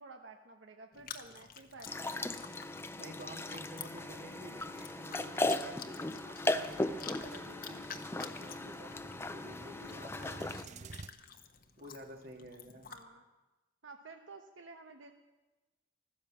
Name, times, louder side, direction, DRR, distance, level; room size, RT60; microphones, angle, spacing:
voice 1, 0.0-2.3 10.2-10.6 12.9-13.2 13.8-15.1, right 3 dB, 85° right, 4 dB, 1.1 m, -52 dB
Chewing mastication, 0.9-13.0, left 7 dB, 50° left, 1.1 m, -51 dB
sound 1, 1.9-10.6, left 2 dB, 15° left, 0.5 m, -37 dB
voice 2, 3.0-10.9 11.8-12.9, right 1 dB, 55° right, 3 dB, 1.9 m, -51 dB
sound 2, 3.7-11.1, right 4 dB, 40° right, 0.6 m, -54 dB
15.0 x 13.0 x 7.4 m, 1.1 s
head